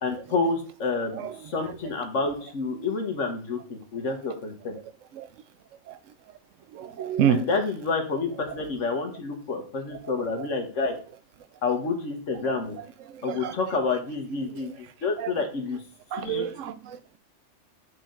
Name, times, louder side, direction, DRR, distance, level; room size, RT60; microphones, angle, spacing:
voice 1, 0.0-4.8 7.3-10.9 11.6-12.7 13.2-15.8 16.2-16.5, left 4 dB, 80° left, 1.7 m, -29 dB
voice 2, 6.7-7.5 10.8-10.9 13.3-13.5 15.2-15.3 16.1-17.2, right 9 dB, 90° right, 1.0 m, -28 dB
6.7 x 4.9 x 3.8 m
omnidirectional pair, 1.3 m